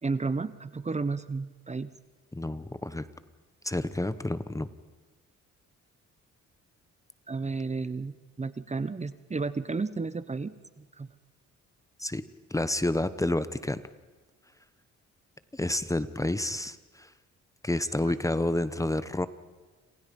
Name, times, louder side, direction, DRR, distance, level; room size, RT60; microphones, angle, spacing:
voice 1, 0.0-1.9 7.3-11.1 18.1-18.2, right 4 dB, 20° right, 14 dB, 1.0 m, -32 dB
voice 2, 2.3-3.0 3.6-4.7 12.0-12.2 12.5-13.8 15.5-17.1 17.6-19.3, left 1 dB, 10° left, 13 dB, 1.1 m, -29 dB
29.5 x 27.5 x 5.5 m, 1.3 s
cardioid pair, 90°, 30 cm